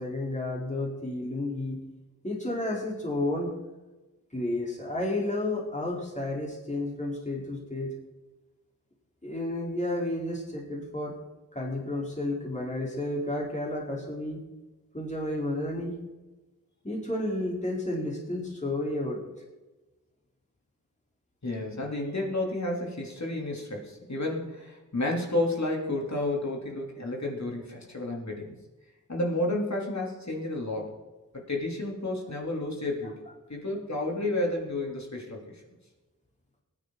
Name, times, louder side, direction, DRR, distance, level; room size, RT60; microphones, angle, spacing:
voice 1, 0.0-1.8 2.2-3.5 4.3-7.9 9.2-11.2 11.5-14.4 14.9-16.0 16.8-19.2, left 1 dB, 20° left, -3 dB, 4.4 m, -31 dB
voice 2, 21.4-28.6 29.1-31.0 31.5-33.2 33.5-35.6, left 2 dB, 50° left, -1 dB, 3.7 m, -31 dB
22.5 x 10.0 x 4.2 m, 1.1 s
wide cardioid pair, 70°, 35 cm